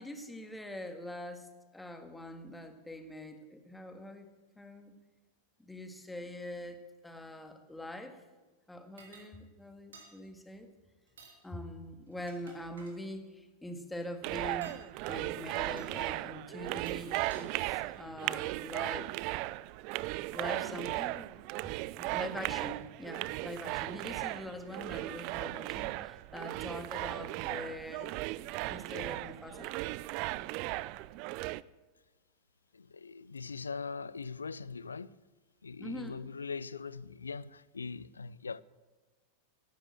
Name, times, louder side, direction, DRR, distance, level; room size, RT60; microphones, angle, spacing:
voice 1, 0.0-4.3 4.6-5.0 5.6-6.8 7.0-8.2 8.7-10.7 11.4-14.8 15.1-19.1 20.3-21.3 22.0-29.7 35.8-36.2, left 1 dB, 5° left, 1.8 m, -43 dB
sound 1, 9.0-9.3 9.9-10.1 11.1-11.4 12.1-13.0 14.5-14.8 15.8-15.9 16.6-17.5, right 4 dB, 65° right, 3.0 m, -54 dB
sound 2, 14.2-31.6, right 19 dB, 45° right, 0.4 m, -37 dB
voice 2, 32.7-35.2 35.6-38.6, left 5 dB, 75° left, 0.5 m, -41 dB
16.0 x 11.0 x 7.6 m
figure-of-eight pair, 90°, 0 cm